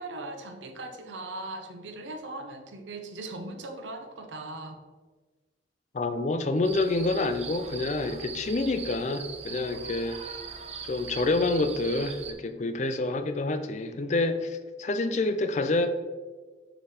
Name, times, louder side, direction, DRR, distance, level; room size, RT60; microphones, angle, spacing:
voice 1, 0.0-4.8, right 2 dB, 80° right, 5 dB, 0.7 m, -39 dB
voice 2, 5.9-10.2 10.8-15.9, left 2 dB, 40° left, 9 dB, 0.4 m, -27 dB
sound 1, 6.6-12.3, right 6 dB, 35° right, 0.5 m, -40 dB
5.2 x 5.0 x 4.2 m, 1.3 s
head